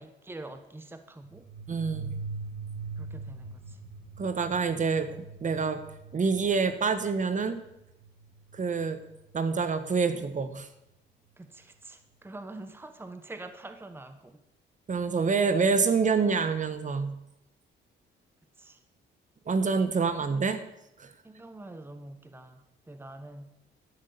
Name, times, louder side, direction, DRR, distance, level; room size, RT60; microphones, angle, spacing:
voice 1, 0.0-1.5 3.0-3.8 11.4-14.4 18.6-18.8 19.9-20.5 21.2-22.6 22.9-23.5, right 2 dB, 10° right, 9 dB, 1.0 m, -45 dB
sound 1, 1.2-9.6, right 4 dB, 55° right, 1.7 m, -42 dB
voice 2, 1.7-2.2 4.2-5.2 5.4-5.8 6.1-7.6 8.5-9.0 9.3-10.7 14.9-17.2 19.5-20.6 21.0-21.1, right 5 dB, 40° right, 10 dB, 1.2 m, -27 dB
12.0 x 6.4 x 9.2 m, 0.87 s
cardioid pair, 90°, 20 cm